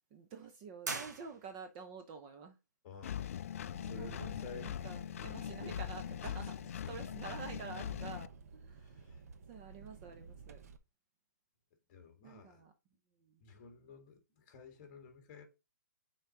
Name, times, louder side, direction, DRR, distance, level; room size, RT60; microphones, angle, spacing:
voice 1, 0.1-2.6 4.0-9.0 9.5-10.6 12.2-12.7 13.2-13.4, right 5 dB, 25° right, 0.7 m, -49 dB
sound 1, 0.8-1.8, right 4 dB, 75° right, 1.7 m, -42 dB
voice 2, 2.8-4.7 5.6-5.8 8.8-9.2 11.9-12.7 13.4-15.4, left 5 dB, 30° left, 1.8 m, -52 dB
Engine, 3.0-8.3, left 10 dB, 50° left, 0.4 m, -42 dB
Engine 2, 3.7-10.8, right 5 dB, 55° right, 0.9 m, -52 dB
5.6 x 4.1 x 4.5 m
hypercardioid pair, 160°, 10 cm